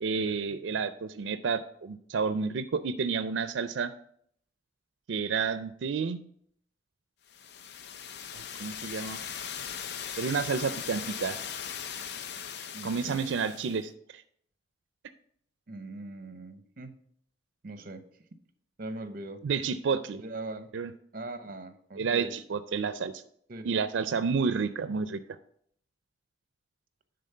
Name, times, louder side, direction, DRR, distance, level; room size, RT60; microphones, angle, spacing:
voice 1, 0.0-3.9 5.1-6.2 8.3-9.2 10.2-11.4 12.8-14.2 19.4-20.2 20.7-20.9 22.0-23.2 23.6-25.2, right 5 dB, 90° right, 11 dB, 0.4 m, -30 dB
sound 1, 7.3-13.8, left 8 dB, 65° left, 0.5 m, -39 dB
voice 2, 12.7-13.2 15.7-17.0 17.6-18.1 18.8-19.4 20.2-20.7 21.1-22.3 23.5-23.8, right 2 dB, 50° right, 10 dB, 0.8 m, -41 dB
10.0 x 3.9 x 5.5 m, 0.65 s
head